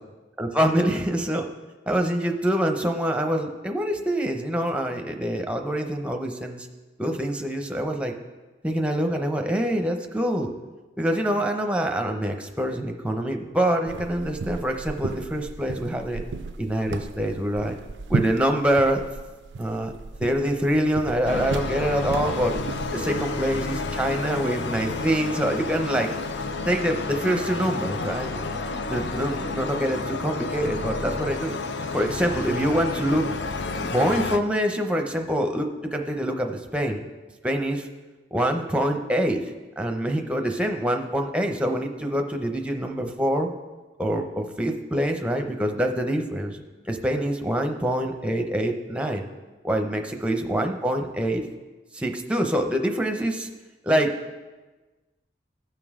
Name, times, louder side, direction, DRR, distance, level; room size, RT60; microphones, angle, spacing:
voice 1, 0.4-1.5 1.9-6.7 7.0-8.1 8.6-10.5 11.0-16.2 16.6-17.7 18.1-19.0 19.6-19.9 20.2-22.6 22.9-26.1 26.7-28.3 28.9-31.5 31.9-33.3 33.8-37.0 37.4-37.9 38.3-39.4 39.8-43.5 44.0-49.3 49.6-51.5 51.9-53.5 53.8-54.1, right 1 dB, 5° right, 4 dB, 0.7 m, -25 dB
sound 1, 13.8-23.1, right 4 dB, 90° right, 0.4 m, -34 dB
sound 2, 21.2-34.4, left 3 dB, 85° left, 0.6 m, -30 dB
15.5 x 5.3 x 3.6 m, 1.2 s
head